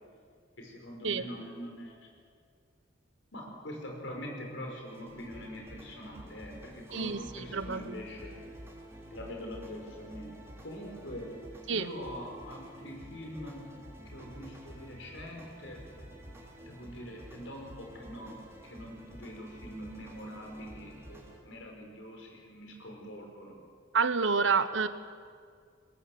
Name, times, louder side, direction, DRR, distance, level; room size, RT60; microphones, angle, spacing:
voice 1, 0.6-2.1 3.3-8.4 9.1-10.4 10.6-11.4 11.7-13.7 14.0-15.8 16.6-23.6, equal, 85° left, 1 dB, 5.2 m, -44 dB
sound 1, 4.9-21.4, equal, 15° right, 3.7 m, -50 dB
voice 2, 6.9-7.9 11.7-11.9 23.9-24.9, right 5 dB, 85° right, 12 dB, 1.2 m, -28 dB
21.5 x 20.5 x 7.8 m, 2.1 s
head